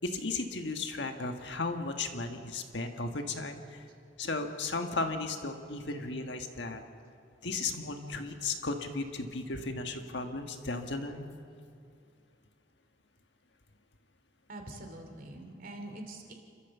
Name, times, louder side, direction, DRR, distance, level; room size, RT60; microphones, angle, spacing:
voice 1, 0.0-3.8 4.2-6.8 7.4-11.3, left 3 dB, 70° left, 5 dB, 1.6 m, -35 dB
voice 2, 14.5-16.3, right 1 dB, 50° right, 4 dB, 2.6 m, -44 dB
28.5 x 13.5 x 7.2 m, 2.4 s
head